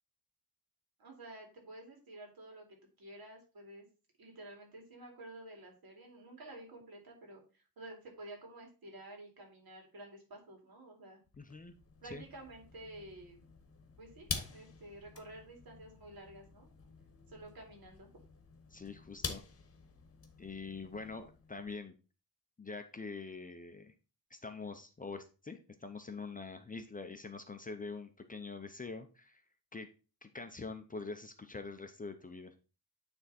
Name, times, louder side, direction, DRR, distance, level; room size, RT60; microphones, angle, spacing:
voice 1, 1.0-2.7 3.0-3.9 4.2-11.2 12.0-13.4 14.0-16.7 17.3-18.1, right 1 dB, 70° right, 1 dB, 2.8 m, -51 dB
sound 1, 11.3-21.8, left 5 dB, 40° left, 1.0 m, -47 dB
voice 2, 11.4-11.7 12.0-12.2 18.7-19.4 20.4-21.9 22.6-23.9 24.3-29.4 29.7-29.9 30.2-32.5, left 4 dB, 25° left, 7 dB, 0.5 m, -45 dB
9.2 x 3.5 x 4.1 m, 0.33 s
wide cardioid pair, 180°, 37 cm